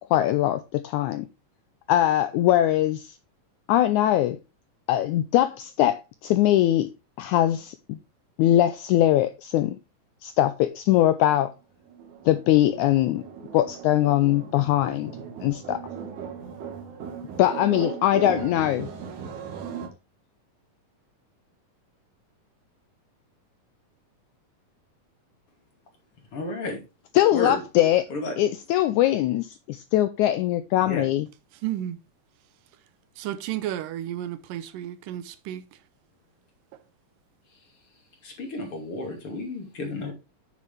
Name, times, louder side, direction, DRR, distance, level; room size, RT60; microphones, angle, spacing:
voice 1, 0.1-1.3 1.9-3.1 3.7-4.4 4.9-6.9 7.2-8.0 8.4-9.8 10.2-11.5 12.3-13.2 13.5-15.1 15.4-15.8 17.4-18.9 27.1-28.1 28.4-31.3, left 13 dB, 80° left, 1.8 m, -21 dB
sound 1, 11.9-19.9, right 7 dB, 65° right, 2.9 m, -38 dB
voice 2, 26.3-26.8 27.3-27.6 28.1-28.3 30.8-31.0 38.2-40.1, left 2 dB, 40° left, 3.1 m, -32 dB
voice 3, 31.5-32.0 33.2-35.7, right 12 dB, 80° right, 2.4 m, -32 dB
9.2 x 6.7 x 3.3 m
omnidirectional pair, 3.9 m